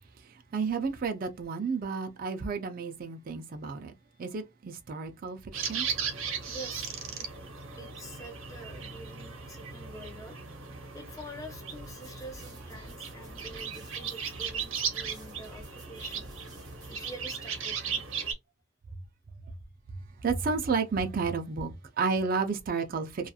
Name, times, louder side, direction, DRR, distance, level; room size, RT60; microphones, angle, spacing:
voice 1, 0.2-3.9 4.2-5.9 20.2-23.3, right 5 dB, 45° right, 0.4 m, -31 dB
sound 1, 5.5-18.3, right 6 dB, 75° right, 0.8 m, -37 dB
voice 2, 6.4-7.3 7.8-10.4 10.9-16.3 16.9-18.0, equal, 15° left, 0.5 m, -46 dB
sound 2, 11.7-17.1, right 1 dB, 20° right, 0.7 m, -52 dB
2.8 x 2.3 x 2.3 m
head